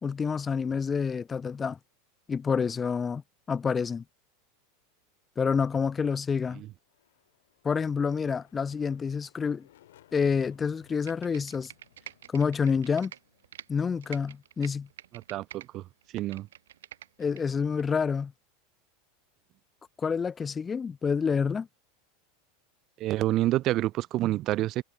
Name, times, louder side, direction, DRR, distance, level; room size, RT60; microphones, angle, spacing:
voice 1, 0.0-1.8 2.3-3.2 3.5-4.0 5.4-6.6 7.6-9.7 10.1-11.7 12.3-13.1 13.7-14.9 17.2-18.3 20.0-21.7, left 6 dB, 25° left, 0.5 m, -28 dB
sound 1, 6.8-14.5, left 13 dB, 75° left, 5.0 m, -63 dB
Computer keyboard, 10.9-13.7 14.0-15.7 16.0-17.4 17.8-17.9, right 11 dB, 80° right, 4.6 m, -46 dB
voice 2, 15.1-15.9 16.1-16.5 23.0-24.8, right 15 dB, 45° right, 0.4 m, -28 dB
hypercardioid pair, 95°, 0 cm